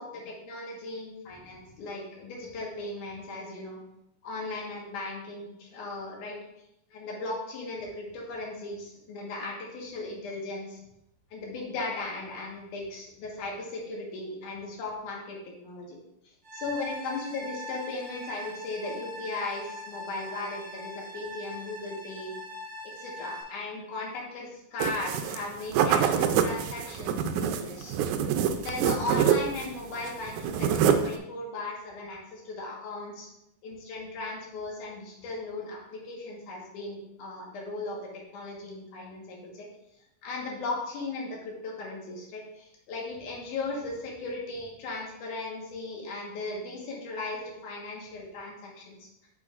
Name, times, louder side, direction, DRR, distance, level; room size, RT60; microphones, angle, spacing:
voice 1, 0.0-3.8 4.2-6.4 6.9-10.8 11.3-16.0 16.5-22.4 22.9-27.9 28.6-33.3 33.6-38.0 38.3-39.7 40.2-49.1, left 3 dB, 80° left, -2 dB, 3.0 m, -37 dB
sound 1, 16.4-23.4, equal, 15° right, 2.1 m, -41 dB
sound 2, 24.8-25.4 25.7-29.7 30.0-31.2, right 8 dB, 80° right, 1.9 m, -25 dB
8.6 x 6.2 x 2.5 m, 0.84 s
omnidirectional pair, 3.5 m